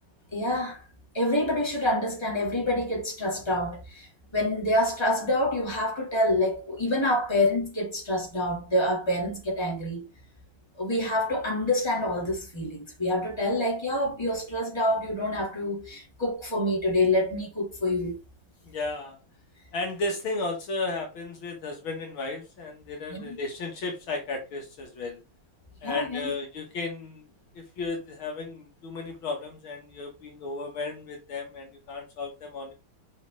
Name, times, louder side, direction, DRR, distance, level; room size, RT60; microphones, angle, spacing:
voice 1, 0.3-0.8 1.1-4.1 4.3-10.0 10.8-18.2 23.1-23.2 25.8-26.3, left 1 dB, 10° left, 2.7 m, -27 dB
voice 2, 18.6-19.2 19.7-25.2 25.8-27.2 27.5-32.7, left 3 dB, 70° left, 2.4 m, -34 dB
5.8 x 5.7 x 3.7 m
omnidirectional pair, 2.4 m